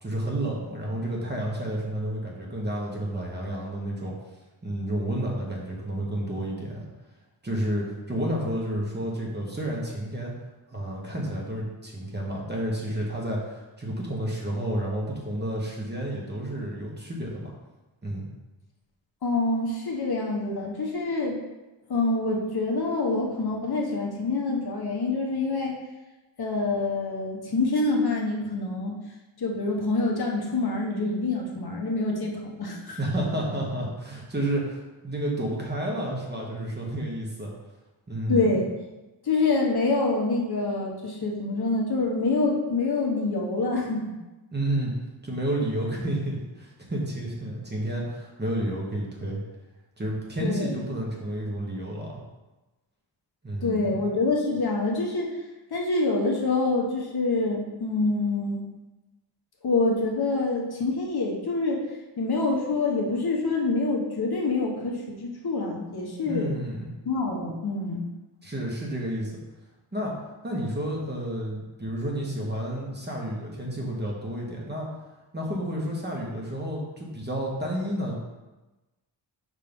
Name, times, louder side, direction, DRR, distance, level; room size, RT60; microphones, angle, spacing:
voice 1, 0.0-4.1 4.6-6.8 7.4-10.3 10.7-17.5 18.0-18.3 33.0-37.5 38.1-38.5 44.5-44.9 45.2-49.4 50.0-52.1 53.4-54.0 66.3-66.9 68.4-69.3 69.9-70.1 70.4-74.9 75.3-78.1, right 1 dB, 20° right, -3 dB, 1.3 m, -30 dB
voice 2, 19.2-21.4 21.9-25.8 26.4-28.9 29.4-33.0 38.3-38.7 39.2-44.1 50.4-50.7 53.6-55.4 55.7-58.6 59.6-61.8 62.2-66.5 67.0-68.0, left 3 dB, 55° left, -1 dB, 1.2 m, -26 dB
5.4 x 3.8 x 5.3 m, 1.1 s
wide cardioid pair, 130°, 46 cm